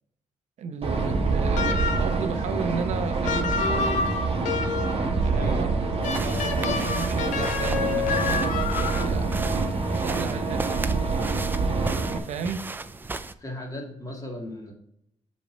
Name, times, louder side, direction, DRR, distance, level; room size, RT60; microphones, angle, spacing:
voice 1, 0.6-4.0 5.2-5.7 6.2-9.3 9.9-11.3 12.1-12.7, right 6 dB, 70° right, 7 dB, 1.0 m, -34 dB
sound 1, 0.8-12.2, right 3 dB, 50° right, 1.2 m, -26 dB
sound 2, 1.6-2.3 3.2-5.1 6.0-9.2, left 5 dB, 90° left, 0.7 m, -29 dB
voice 2, 5.3-6.0 13.4-14.7, left 1 dB, 30° left, -1 dB, 2.3 m, -36 dB
sound 3, 6.0-13.3, right 3 dB, 15° right, 0.4 m, -36 dB
6.3 x 4.5 x 5.4 m, 0.74 s
cardioid pair, 105°, 12 cm